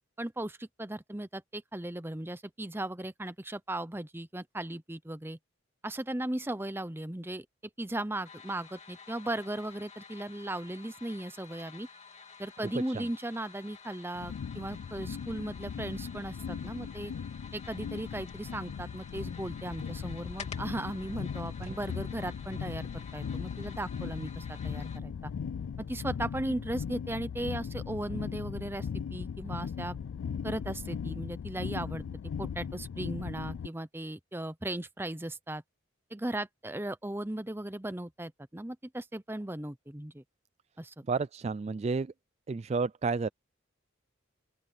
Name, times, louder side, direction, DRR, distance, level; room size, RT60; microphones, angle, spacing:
voice 1, 0.2-5.4 5.8-7.5 7.8-11.9 12.4-17.1 17.5-25.3 25.8-30.0 30.4-32.0 32.4-35.6 36.1-40.2 40.8-41.0, right 1 dB, 10° right, 0.8 m, -37 dB
sound 1, 8.2-25.0, left 5 dB, 35° left, 3.4 m, -51 dB
sound 2, 14.1-33.7, left 7 dB, 85° left, 0.3 m, -38 dB
voice 2, 41.1-42.1 42.5-43.3, right 4 dB, 35° right, 0.3 m, -31 dB
open air
head